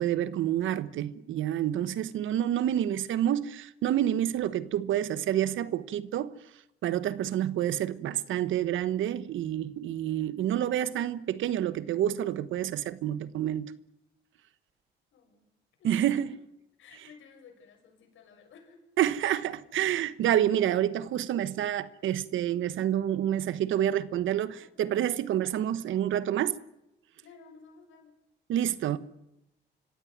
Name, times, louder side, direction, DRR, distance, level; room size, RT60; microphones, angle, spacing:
voice 1, 0.0-6.3 6.8-13.7 15.8-16.3 19.0-26.6 28.5-29.0, right 11 dB, 85° right, 1.2 m, -28 dB
voice 2, 15.1-15.5 15.8-16.2 16.8-18.8 24.5-24.7 27.2-28.1, left 5 dB, 80° left, 6.7 m, -54 dB
25.5 x 15.5 x 9.4 m
cardioid pair, 75°, 20 cm